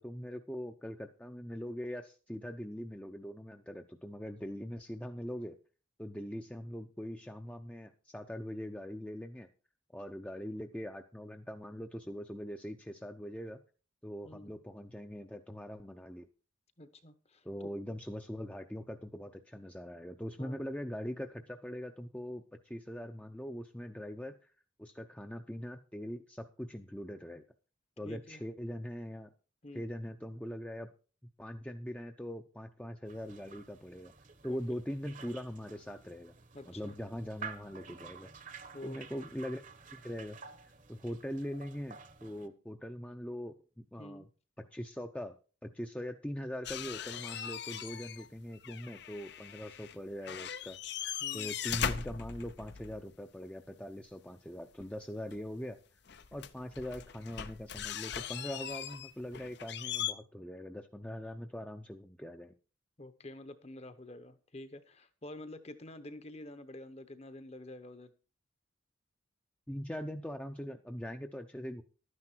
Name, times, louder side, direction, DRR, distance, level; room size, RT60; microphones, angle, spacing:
voice 1, 0.0-5.6 6.0-9.5 9.9-13.6 14.0-16.3 17.4-24.3 24.8-27.4 28.0-29.3 29.7-30.9 31.4-34.1 34.4-36.3 36.7-38.3 38.8-39.6 39.9-40.4 40.6-44.3 44.7-45.4 45.6-50.8 51.3-55.8 56.3-62.5 69.7-71.8, equal, 5° left, 0.6 m, -42 dB
voice 2, 16.8-17.7 20.4-20.6 28.0-28.4 29.6-29.8 34.5-34.6 36.5-36.9 38.7-39.0 44.0-44.3 51.2-51.5 63.0-68.1, left 1 dB, 30° left, 0.9 m, -48 dB
sound 1, 33.1-42.5, right 5 dB, 40° right, 1.0 m, -51 dB
sound 2, 46.6-48.3 48.5-50.0 50.2-53.0 55.3-55.4 56.1-60.1, left 8 dB, 55° left, 0.6 m, -39 dB
12.0 x 9.8 x 4.5 m
head